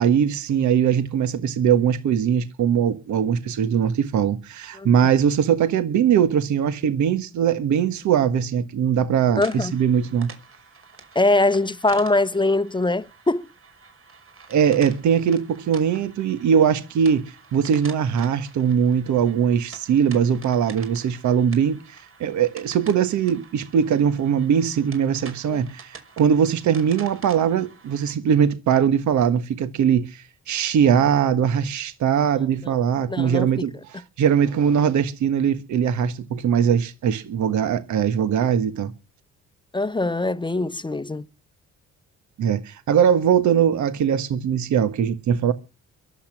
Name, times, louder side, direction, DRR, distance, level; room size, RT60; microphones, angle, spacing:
voice 1, 0.0-10.3 14.5-38.9 42.4-45.5, right 8 dB, 70° right, 1.4 m, -21 dB
voice 2, 4.7-5.1 9.4-9.7 11.1-13.5 25.5-25.6 32.4-32.5 33.1-33.5 39.7-41.3, left 2 dB, 15° left, 0.8 m, -22 dB
sound 1, 9.4-28.1, right 5 dB, 45° right, 5.8 m, -46 dB
23.0 x 8.3 x 6.1 m
cardioid pair, 90°, 30 cm